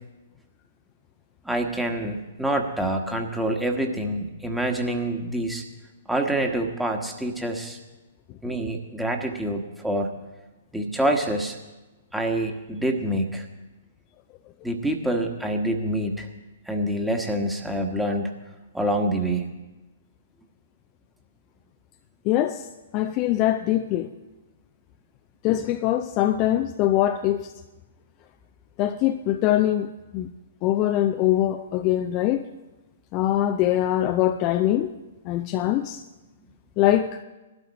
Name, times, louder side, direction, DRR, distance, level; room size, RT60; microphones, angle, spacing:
voice 1, 1.4-5.6 6.1-7.8 8.4-10.1 10.7-11.6 12.1-13.5 14.6-16.3 16.6-18.3 18.7-19.5, right 1 dB, 5° right, 1.4 m, -26 dB
voice 2, 22.2-22.7 22.9-24.1 25.4-27.5 28.8-30.3 30.6-32.5 33.1-34.9 35.2-36.0 36.8-37.2, left 13 dB, 30° left, 0.5 m, -23 dB
19.0 x 12.0 x 4.2 m
figure-of-eight pair, 115°, 0 cm